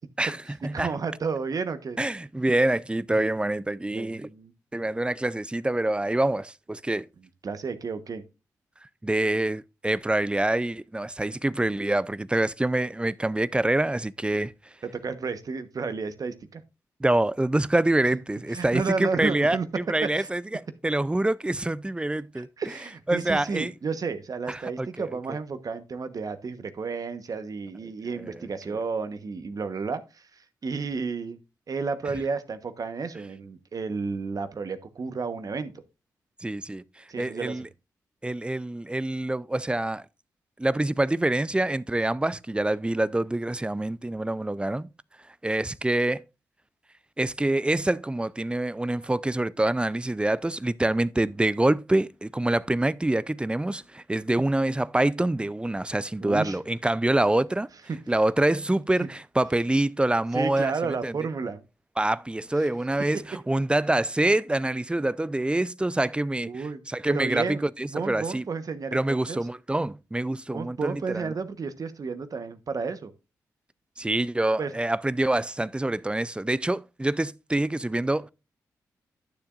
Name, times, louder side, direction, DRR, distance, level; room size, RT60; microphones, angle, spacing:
voice 1, 0.2-0.9 2.0-4.3 4.7-7.1 9.0-14.5 17.0-22.5 23.1-23.7 24.5-25.4 28.1-28.3 28.7-28.8 36.4-36.8 37.2-37.7 38.2-40.0 40.6-44.9 45.4-46.2 47.2-57.7 58.1-61.1 62.0-68.4 68.9-71.3 74.0-78.3, right 1 dB, 15° right, 0.5 m, -26 dB
voice 2, 0.7-2.0 3.9-4.5 7.4-8.2 14.8-16.6 18.5-19.7 20.0-20.3 22.3-31.4 31.7-35.8 37.1-37.6 56.2-56.6 57.1-57.2 57.9-58.0 60.3-61.6 66.4-66.8 67.1-67.6 67.9-69.4 70.5-73.1 74.6-74.7, right 4 dB, 55° right, 1.1 m, -32 dB
11.5 x 7.1 x 2.5 m
supercardioid pair, 45°, 7 cm